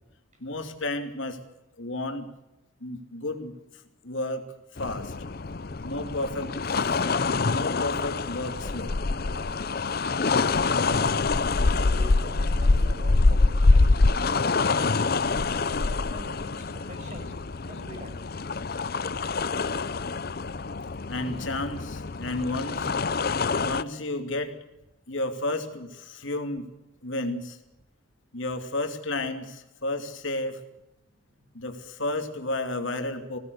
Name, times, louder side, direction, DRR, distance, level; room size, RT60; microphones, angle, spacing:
voice 1, 0.4-1.4 1.8-2.3 2.8-3.5 4.0-4.4 4.8-5.1 5.8-7.0 7.5-8.9 21.1-22.9 23.6-24.5 25.1-26.7 27.0-27.6 28.3-30.6 31.5-33.4, left 2 dB, 70° left, 5 dB, 2.7 m, -32 dB
sound 1, 4.8-23.8, left 3 dB, 50° left, 0.6 m, -25 dB
sound 2, 6.6-9.6 10.0-11.7 11.9-15.4, equal, 15° right, 4.5 m, -53 dB
voice 2, 10.7-11.2 11.6-15.2 15.8-17.4 17.6-18.2 20.0-20.3 31.5-31.6, right 1 dB, 35° right, 5 dB, 6.6 m, -45 dB
21.0 x 17.5 x 8.1 m, 0.94 s
head